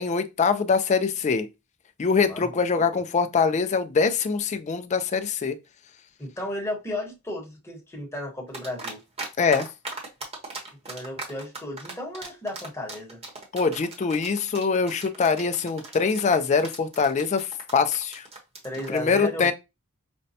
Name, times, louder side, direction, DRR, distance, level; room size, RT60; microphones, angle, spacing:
voice 1, 0.0-1.5 2.0-5.6 9.4-9.7 13.5-18.3 18.9-19.5, left 5 dB, 30° left, 0.4 m, -23 dB
voice 2, 2.0-2.5 6.2-9.0 10.9-13.2 18.6-19.5, left 1 dB, 10° left, 1.1 m, -34 dB
sound 1, 8.5-9.3 9.5-19.0, right 3 dB, 30° right, 1.0 m, -38 dB
5.1 x 2.2 x 2.7 m
head